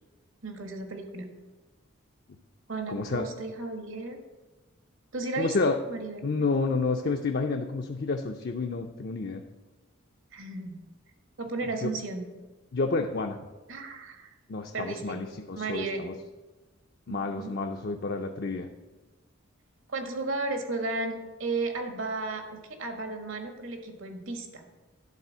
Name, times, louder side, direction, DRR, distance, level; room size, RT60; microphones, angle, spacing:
voice 1, 0.4-1.3 2.7-4.2 5.1-6.3 10.3-10.8 11.4-12.2 13.7-14.3 14.7-15.2 15.5-16.1 17.1-17.6 19.9-24.7, right 3 dB, 70° right, 6 dB, 1.5 m, -34 dB
voice 2, 2.9-3.2 5.4-5.8 6.2-9.4 11.8-11.9 12.7-13.4 14.5-16.1 17.1-18.7, left 3 dB, 50° left, 3 dB, 0.5 m, -29 dB
11.0 x 4.2 x 7.2 m, 1.2 s
head